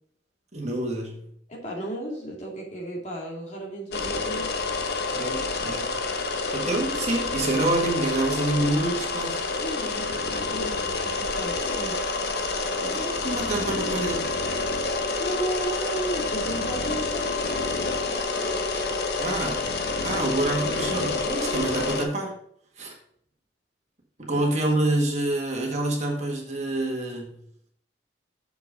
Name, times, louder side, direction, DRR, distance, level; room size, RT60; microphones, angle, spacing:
voice 1, 0.5-1.3 5.1-5.9 6.5-9.5 12.8-14.4 19.2-19.7 20.0-22.4 22.8-22.9 24.2-27.4, right 2 dB, 40° right, 0 dB, 1.8 m, -27 dB
voice 2, 1.5-4.5 9.6-12.0 15.2-17.4 24.3-24.4, right 1 dB, 40° left, -2 dB, 2.3 m, -34 dB
sound 1, 3.9-22.1, left 3 dB, 60° left, 0.9 m, -28 dB
6.8 x 5.9 x 5.1 m, 0.66 s
head